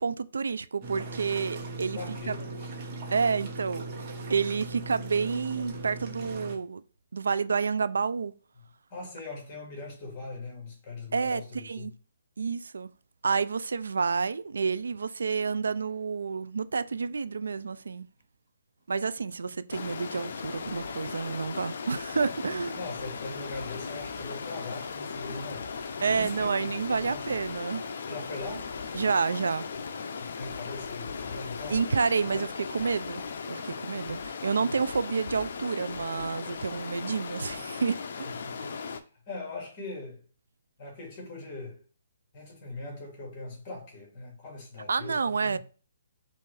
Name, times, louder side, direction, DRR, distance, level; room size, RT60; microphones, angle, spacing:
voice 1, 0.0-2.0 2.3-2.4 3.1-6.8 7.1-8.3 11.1-11.9 12.4-12.9 13.2-18.1 18.9-22.8 26.0-27.8 28.9-29.7 31.7-33.2 33.5-38.3 44.9-45.6, right 5 dB, 85° right, 0.3 m, -29 dB
sound 1, 0.8-6.5, right 2 dB, 30° right, 1.1 m, -39 dB
voice 2, 1.9-2.7 8.9-11.9 22.3-22.4 22.7-27.2 28.1-28.7 30.2-31.8 32.3-32.4 33.7-33.8 34.6-34.7 38.2-40.2 40.8-41.8 42.3-45.6, left 3 dB, 25° left, 2.1 m, -41 dB
Stream, 19.7-39.0, left 5 dB, 55° left, 0.5 m, -37 dB
5.5 x 2.5 x 3.3 m
hypercardioid pair, 165°, 0 cm